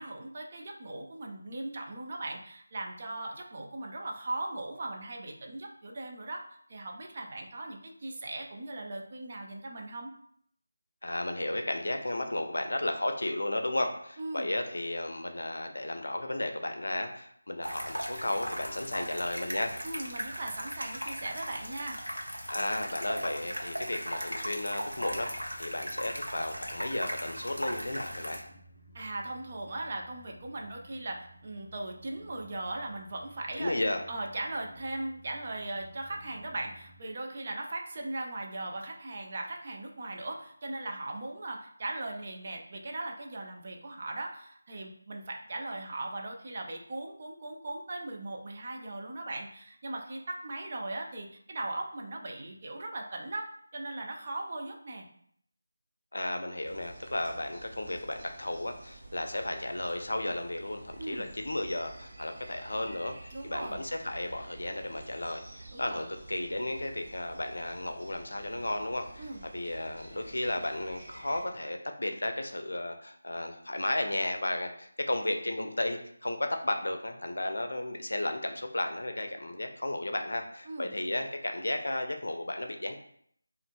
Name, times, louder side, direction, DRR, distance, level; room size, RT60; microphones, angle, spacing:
voice 1, 0.0-6.4 6.7-10.1 14.2-14.5 19.8-22.0 28.9-33.8 34.1-55.1 61.0-61.3 63.3-63.8 65.7-66.1 69.2-69.4 80.7-80.9, right 2 dB, 35° right, 1 dB, 0.5 m, -38 dB
voice 2, 11.0-19.7 22.5-28.4 33.6-34.0 56.1-69.3 69.5-82.9, left 1 dB, 60° left, 5 dB, 0.5 m, -34 dB
sound 1, 17.6-28.4, equal, 85° right, 0.9 m, -38 dB
sound 2, 24.9-37.0, right 1 dB, 15° right, 1.3 m, -55 dB
sound 3, 56.6-71.4, right 2 dB, 55° right, 1.0 m, -50 dB
5.0 x 2.5 x 2.2 m, 0.65 s
figure-of-eight pair, 160°, 0 cm